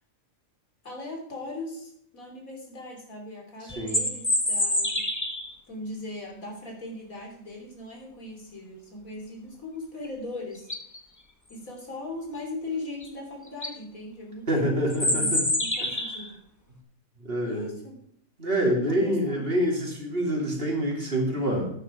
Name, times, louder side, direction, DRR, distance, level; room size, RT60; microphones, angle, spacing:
voice 1, 0.8-5.1 5.7-10.7 11.5-16.4 17.4-18.0 18.9-19.5, left 2 dB, 85° left, 0 dB, 3.7 m, -39 dB
sound 1, 3.7-5.5 10.0-10.1 10.5-11.0 13.0-13.1 13.5-13.7 14.9-16.3, left 1 dB, 15° left, 1.2 m, -26 dB
voice 2, 14.5-15.4 17.2-17.7 18.4-21.7, equal, 45° right, -1 dB, 3.1 m, -26 dB
9.9 x 9.9 x 5.1 m, 0.69 s
omnidirectional pair, 1.4 m